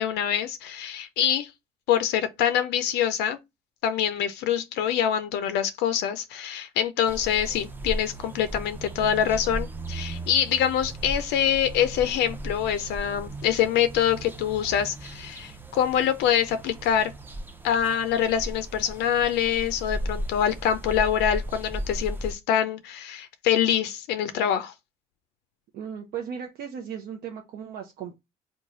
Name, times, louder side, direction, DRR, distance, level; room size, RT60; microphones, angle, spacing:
voice 1, 0.0-1.5 1.9-3.4 3.8-17.1 17.6-24.7, left 9 dB, 80° left, 0.4 m, -25 dB
sound 1, 7.1-22.3, right 1 dB, 10° right, 0.5 m, -36 dB
voice 2, 25.7-28.1, right 8 dB, 65° right, 0.6 m, -36 dB
3.0 x 2.2 x 3.7 m
cardioid pair, 110°, 17 cm